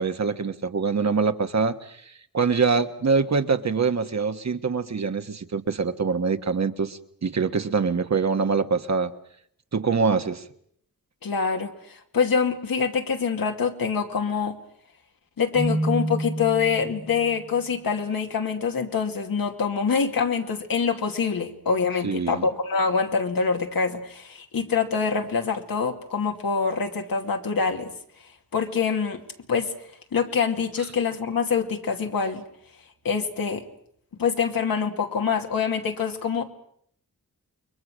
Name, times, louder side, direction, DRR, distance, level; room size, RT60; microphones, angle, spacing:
voice 1, 0.0-9.1 9.7-10.4 22.0-22.4, right 5 dB, 50° right, 8 dB, 1.5 m, -24 dB
voice 2, 11.2-14.6 15.4-27.9 28.5-29.2 29.5-29.7 30.1-32.4 33.0-33.6 34.2-36.4, left 5 dB, 80° left, 3 dB, 2.6 m, -25 dB
Keyboard (musical), 15.5-17.4, right 1 dB, 5° right, 1.7 m, -28 dB
29.5 x 22.5 x 6.4 m, 0.68 s
cardioid pair, 75°, 34 cm